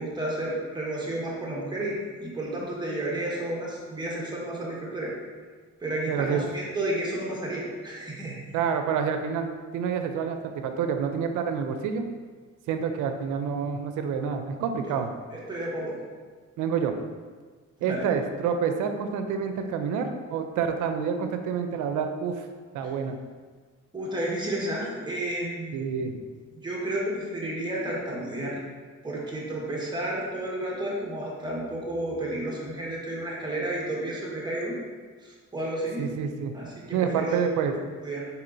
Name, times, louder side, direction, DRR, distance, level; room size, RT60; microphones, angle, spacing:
voice 1, 0.0-5.1 5.8-8.4 14.9-15.0 15.3-16.0 17.8-18.1 23.9-25.8 26.5-28.6 29.0-34.8 35.2-36.1 36.5-37.4 38.0-38.2, right 1 dB, 15° right, -4 dB, 1.2 m, -31 dB
voice 2, 6.1-6.4 8.5-10.4 10.6-12.0 12.7-15.1 16.6-16.9 17.8-22.5 22.7-23.2 25.7-26.2 36.0-36.5 36.9-37.7, right 6 dB, 85° right, 7 dB, 0.5 m, -28 dB
4.2 x 4.0 x 2.6 m, 1.5 s
cardioid pair, 90°, 30 cm